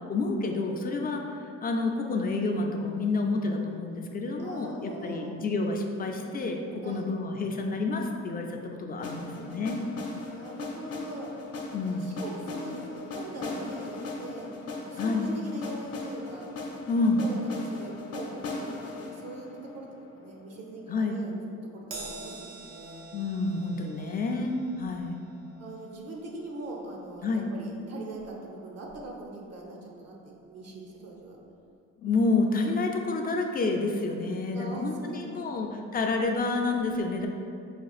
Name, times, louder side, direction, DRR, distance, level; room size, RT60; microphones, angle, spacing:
voice 1, 0.1-9.8 11.7-12.2 15.0-15.3 16.9-17.3 20.9-21.2 23.1-25.1 27.2-27.5 32.0-37.3, left 3 dB, 30° left, 2 dB, 0.4 m, -29 dB
voice 2, 4.4-5.3 5.8-6.4 6.8-7.1 9.1-9.6 10.3-14.5 14.8-16.5 16.9-21.4 21.7-23.0 25.6-31.4 34.5-35.8, right 2 dB, 55° right, -1 dB, 0.7 m, -42 dB
sound 1, 9.0-20.9, left 3 dB, 50° left, 0.7 m, -39 dB
Crash cymbal, 21.9-28.5 28.9-29.1 30.1-30.2, right 3 dB, 90° right, 0.7 m, -47 dB
5.0 x 2.4 x 2.4 m, 2.5 s
cardioid pair, 90°, 30 cm